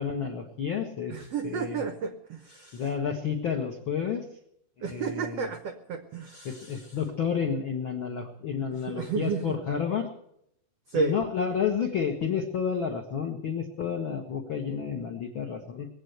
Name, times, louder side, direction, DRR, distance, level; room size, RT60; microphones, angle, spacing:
voice 1, 0.0-1.2 1.4-1.8 2.7-4.3 4.8-5.5 6.4-10.1 10.9-15.9, left 7 dB, 75° left, 3 dB, 1.1 m, -30 dB
voice 2, 1.1-2.8 4.8-6.9 8.9-9.4 10.9-11.2, right 5 dB, 85° right, 9 dB, 1.3 m, -32 dB
20.5 x 8.3 x 8.0 m, 0.74 s
omnidirectional pair, 4.3 m